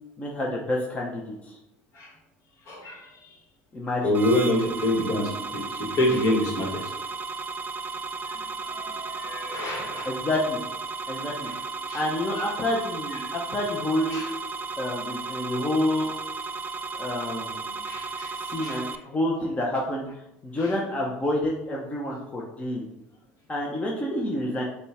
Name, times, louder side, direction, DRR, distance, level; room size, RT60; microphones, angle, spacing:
voice 1, 0.2-1.6 3.7-4.2 10.0-10.6 11.0-11.5 11.9-14.2 14.8-16.1 16.9-17.8 18.3-20.0 20.4-22.9 23.5-24.6, left 1 dB, 25° left, -2 dB, 0.8 m, -28 dB
voice 2, 2.7-3.2 4.0-6.9 8.2-10.1 11.5-11.6 11.9-12.0 12.3-12.5 14.1-14.3 17.8-18.3 18.6-18.8 20.6-20.7, left 1 dB, 55° left, 0 dB, 1.6 m, -27 dB
sound 1, 4.1-19.0, right 4 dB, 30° right, 0.4 m, -34 dB
5.4 x 2.3 x 4.2 m, 0.84 s
hypercardioid pair, 80°, 6 cm